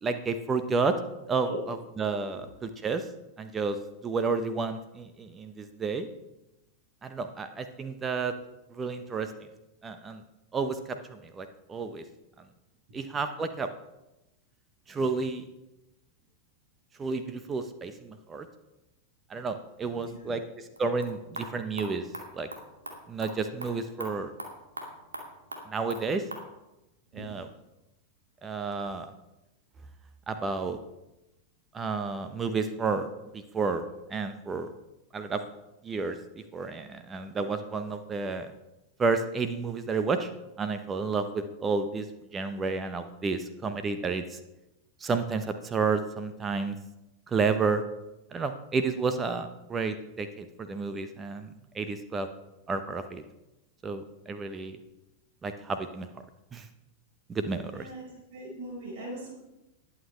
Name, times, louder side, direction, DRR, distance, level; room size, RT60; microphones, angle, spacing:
voice 1, 0.0-1.0 1.3-3.1 3.4-3.8 4.0-6.1 7.0-8.3 8.7-9.5 9.8-10.2 10.5-12.0 12.9-13.7 14.9-15.4 17.0-18.5 19.3-22.1 22.3-22.5 23.1-24.3 25.7-26.2 27.1-27.5 28.4-29.1 30.3-30.8 31.7-33.1 33.3-33.8 34.1-34.7 35.1-35.4 35.8-36.2 36.5-38.5 39.0-40.3 40.6-42.1 42.3-44.4 45.0-46.8 47.3-47.8 48.3-52.3 52.7-53.2 53.8-54.8 55.4-56.1 56.5-56.7 57.3-57.9, right 4 dB, 20° right, 9 dB, 0.9 m, -31 dB
voice 2, 20.0-20.4 27.1-27.3 57.7-59.3, right 2 dB, 50° right, -4 dB, 5.0 m, -41 dB
sound 1, 20.6-26.5, right 1 dB, 80° right, 2.3 m, -43 dB
20.5 x 8.4 x 3.3 m, 0.95 s
figure-of-eight pair, 90°, 0 cm